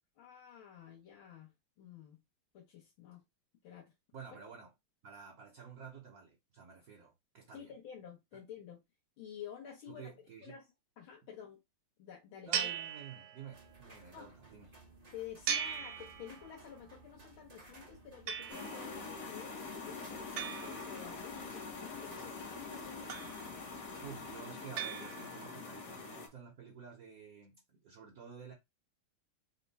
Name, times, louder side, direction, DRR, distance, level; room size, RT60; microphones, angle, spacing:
voice 1, 0.2-1.5 1.8-2.2 2.5-3.2 3.6-3.9 7.5-8.8 9.2-10.1 10.4-10.7 11.0-11.6 12.0-12.7 14.1-14.3 15.1-23.3, left 9 dB, 75° left, 1.8 m, -50 dB
voice 2, 4.1-4.7 5.0-7.7 9.9-10.5 12.4-14.7 24.0-28.5, right 6 dB, 55° right, 1.1 m, -51 dB
sound 1, 12.5-13.7 15.5-16.7 18.3-19.0 20.4-21.5 23.1-23.8 24.8-25.7, right 8 dB, 75° right, 1.5 m, -40 dB
sound 2, 13.5-24.4, right 3 dB, 40° right, 0.5 m, -59 dB
sound 3, 18.5-26.3, left 4 dB, 50° left, 1.2 m, -45 dB
4.2 x 2.3 x 4.0 m
omnidirectional pair, 2.3 m